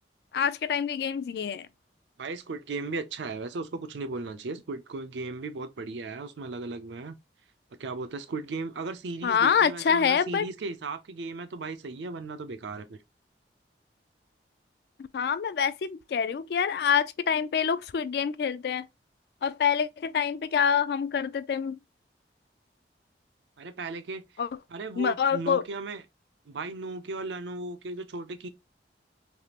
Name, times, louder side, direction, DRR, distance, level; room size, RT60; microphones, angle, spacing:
voice 1, 0.3-1.7 9.2-10.5 15.0-18.9 19.4-21.8 24.4-24.5 25.0-25.6, left 7 dB, 60° left, 0.3 m, -26 dB
voice 2, 2.2-7.1 7.8-13.0 23.6-24.2 24.7-26.0 26.5-28.5, right 3 dB, 85° right, 0.5 m, -36 dB
3.4 x 2.4 x 2.8 m
head